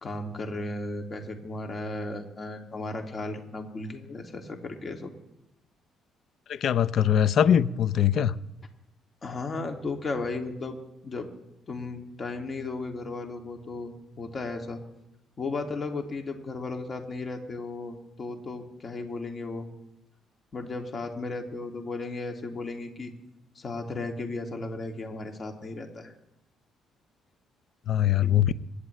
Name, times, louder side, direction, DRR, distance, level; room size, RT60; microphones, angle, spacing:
voice 1, 0.0-5.1 9.2-10.8 11.0-11.3 11.7-14.8 15.4-19.6 20.5-23.1 23.6-26.1 28.2-28.5, left 3 dB, 40° left, 2.5 m, -35 dB
voice 2, 6.5-8.3 27.9-28.5, left 9 dB, 60° left, 0.6 m, -22 dB
26.5 x 9.8 x 3.3 m
hypercardioid pair, 50°, 0 cm